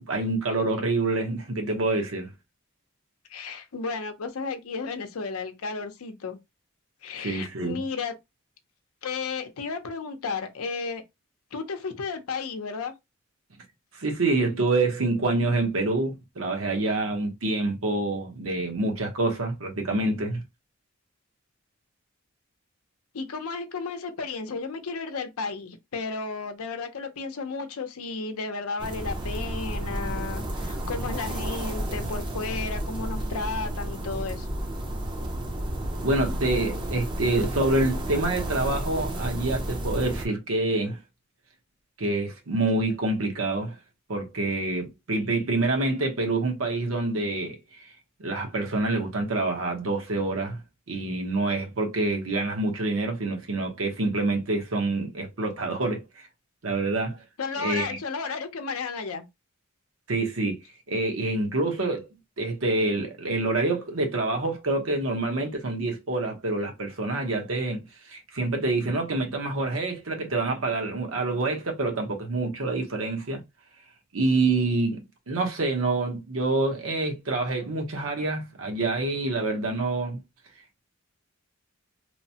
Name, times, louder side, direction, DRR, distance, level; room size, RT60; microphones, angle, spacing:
voice 1, 0.0-2.3 7.2-7.8 13.9-20.4 36.0-41.0 42.0-43.8 44.1-47.6 48.2-50.6 50.9-56.0 56.6-57.2 57.6-58.0 60.1-60.6 60.9-62.1 62.4-73.4 74.1-80.2, right 2 dB, 75° right, 0.9 m, -27 dB
voice 2, 3.3-6.4 7.0-8.2 9.0-11.0 11.5-12.9 23.1-34.5 57.4-59.3, left 4 dB, 90° left, 0.6 m, -33 dB
sound 1, 28.8-40.3, right 1 dB, 20° right, 0.4 m, -31 dB
3.0 x 2.0 x 2.7 m
head